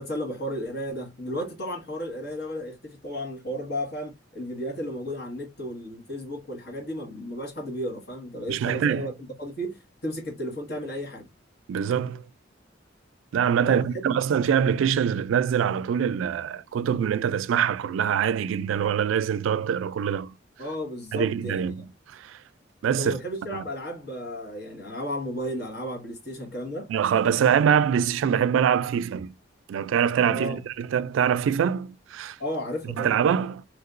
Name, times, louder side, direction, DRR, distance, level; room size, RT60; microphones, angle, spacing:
voice 1, 0.0-9.1 9.4-11.3 13.6-14.0 20.6-21.9 23.0-26.9 30.3-30.6 32.4-33.1, equal, 55° left, 1.4 m, -33 dB
voice 2, 8.5-9.1 11.7-12.2 13.3-20.3 21.1-21.8 22.1-22.4 22.8-23.2 23.5-23.6 26.9-29.3 29.7-32.4 33.0-33.6, right 8 dB, 85° right, 0.3 m, -24 dB
3.3 x 2.9 x 2.4 m
head